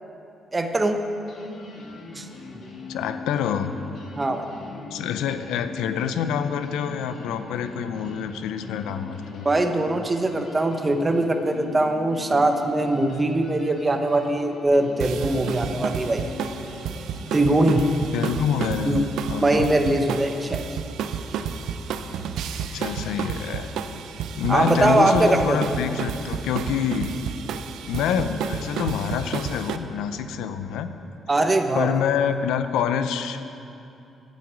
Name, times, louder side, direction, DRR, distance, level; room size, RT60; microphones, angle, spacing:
voice 1, 0.5-1.0 2.1-2.3 4.2-4.5 9.4-16.2 17.3-17.8 18.8-19.0 19.4-20.6 24.5-25.6 31.3-31.9, right 2 dB, 25° right, 6 dB, 1.0 m, -21 dB
sound 1, 1.2-18.5, left 3 dB, 60° left, 1.6 m, -41 dB
voice 2, 2.9-3.7 4.9-9.5 18.1-19.7 22.7-23.7 24.4-27.2 27.8-30.9 31.7-33.4, left 8 dB, 90° left, 10 dB, 0.5 m, -26 dB
sound 2, 15.0-29.8, right 7 dB, 80° right, 0.5 m, -31 dB
9.3 x 7.8 x 8.2 m, 2.8 s
cardioid pair, 90°, 0 cm